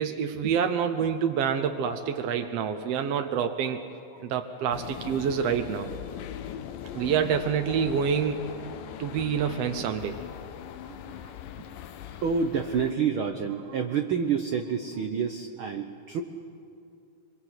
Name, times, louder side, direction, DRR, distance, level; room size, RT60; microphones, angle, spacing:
voice 1, 0.0-3.8 4.2-5.9 6.9-8.4 9.0-10.2, right 7 dB, 70° right, 6 dB, 1.5 m, -27 dB
sound 1, 4.7-12.9, left 9 dB, 85° left, 2.5 m, -40 dB
voice 2, 10.8-11.4 12.0-16.2, right 6 dB, 85° right, 6 dB, 1.1 m, -29 dB
24.5 x 24.0 x 8.1 m, 2.5 s
omnidirectional pair, 3.8 m